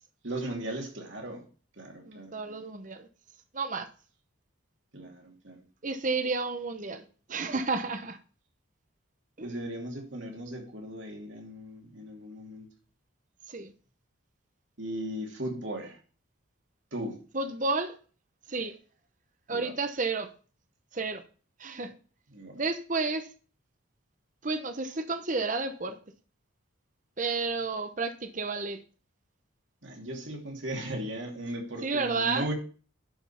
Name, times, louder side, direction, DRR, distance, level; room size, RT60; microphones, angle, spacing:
voice 1, 0.2-1.4 1.8-2.6 4.9-5.6 9.4-12.7 14.8-16.0 16.9-17.2 19.5-19.7 22.3-22.6 29.8-32.5, right 1 dB, 60° right, 2.7 m, -37 dB
voice 2, 2.1-3.1 3.5-3.9 5.8-7.0 7.3-8.2 9.4-9.5 13.5-13.7 17.3-18.0 18.5-18.8 19.5-20.3 20.9-21.2 21.6-21.9 22.5-23.3 24.4-26.0 27.2-28.8 31.8-32.5, right 3 dB, 35° right, 0.9 m, -31 dB
11.5 x 5.2 x 5.7 m
head